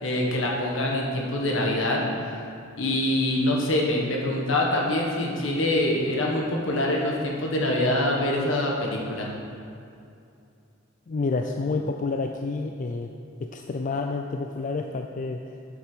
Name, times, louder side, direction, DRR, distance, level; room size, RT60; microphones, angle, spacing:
voice 1, 0.0-2.0 2.8-9.3, left 1 dB, 70° left, -1 dB, 1.5 m, -25 dB
voice 2, 11.1-13.1 13.4-15.4, left 3 dB, 40° left, 4 dB, 0.4 m, -29 dB
8.1 x 7.4 x 5.1 m, 2.5 s
head